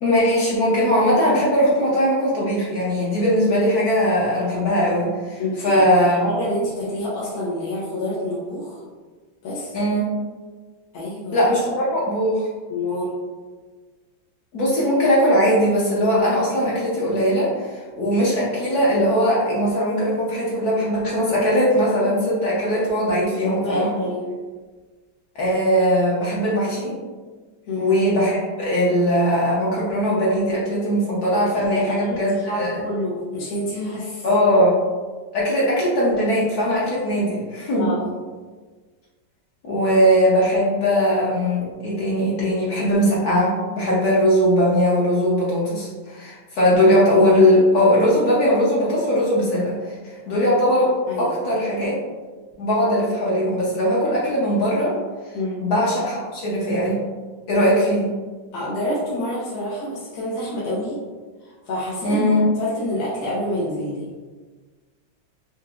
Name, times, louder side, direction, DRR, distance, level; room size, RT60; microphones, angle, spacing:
voice 1, 0.0-6.2 9.7-10.1 11.3-12.5 14.5-23.9 25.3-27.0 27.8-32.8 34.2-34.8 35.3-37.9 39.6-51.9 52.6-55.0 55.2-57.0 57.5-58.1 62.0-62.4, equal, 60° left, -6 dB, 1.1 m, -20 dB
voice 2, 5.4-8.8 9.4-9.8 10.9-11.5 12.7-13.2 23.2-24.3 27.7-27.9 31.5-32.2 32.5-34.3 37.8-38.1 51.1-51.3 55.3-55.6 58.5-61.0 61.4-64.1, left 1 dB, 80° left, -7 dB, 1.6 m, -27 dB
4.6 x 2.8 x 2.4 m, 1.4 s
omnidirectional pair, 2.1 m